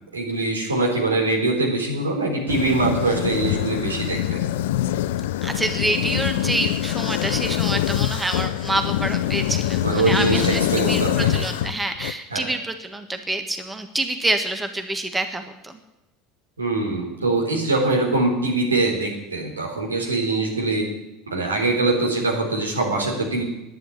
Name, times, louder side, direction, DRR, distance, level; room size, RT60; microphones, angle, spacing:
voice 1, 0.1-4.4 9.8-11.5 12.3-12.4 16.6-20.9 21.3-23.4, right 2 dB, 85° right, 0 dB, 3.6 m, -23 dB
sound 1, 2.5-12.1, left 12 dB, 65° left, 0.5 m, -24 dB
voice 2, 5.4-15.8, right 2 dB, 10° right, 7 dB, 1.6 m, -27 dB
11.0 x 10.5 x 9.8 m, 0.93 s
figure-of-eight pair, 70°, 0 cm